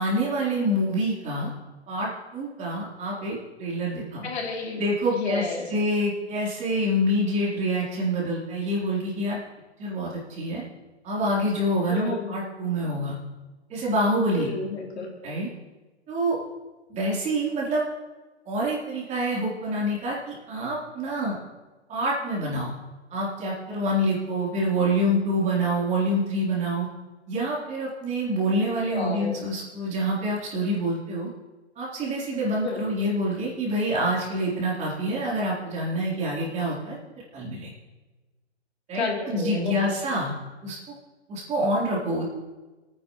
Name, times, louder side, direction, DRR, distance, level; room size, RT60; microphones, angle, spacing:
voice 1, 0.0-1.5 1.9-4.3 4.8-9.4 9.8-10.6 11.0-13.2 13.7-14.5 15.2-15.5 16.1-16.4 16.9-17.8 18.5-21.4 21.9-22.7 23.1-26.9 27.3-31.3 31.8-37.0 37.3-37.7 38.9-40.4 40.6-40.8 41.3-42.2, equal, 20° right, -4 dB, 3.5 m, -26 dB
voice 2, 4.2-4.8 5.1-5.7 11.9-12.3 14.3-15.1 28.8-29.3 32.6-32.8 38.9-39.9, left 4 dB, 65° left, -1 dB, 3.1 m, -30 dB
28.5 x 9.7 x 3.0 m, 1.2 s
hypercardioid pair, 135°, 34 cm